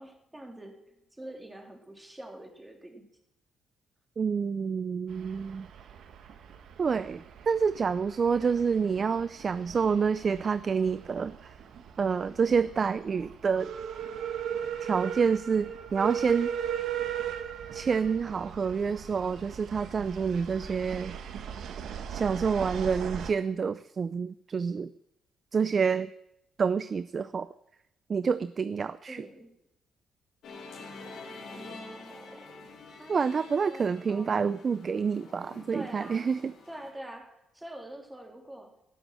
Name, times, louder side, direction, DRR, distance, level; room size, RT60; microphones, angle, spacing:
voice 1, 0.0-3.1 29.1-29.5 31.3-32.6 32.9-34.4 35.7-36.4 36.7-38.8, right 1 dB, 10° right, 3 dB, 3.5 m, -45 dB
voice 2, 4.2-5.7 6.8-11.3 12.0-13.7 14.8-16.5 17.7-21.1 22.1-24.9 25.5-26.1 26.6-27.5 28.1-29.2 33.1-36.5, right 6 dB, 40° right, 15 dB, 0.5 m, -28 dB
sound 1, 5.1-23.3, right 8 dB, 70° right, 1.4 m, -38 dB
Musical instrument, 30.4-36.9, left 3 dB, 70° left, 4.5 m, -47 dB
17.5 x 7.9 x 7.7 m, 0.80 s
cardioid pair, 90°, 0 cm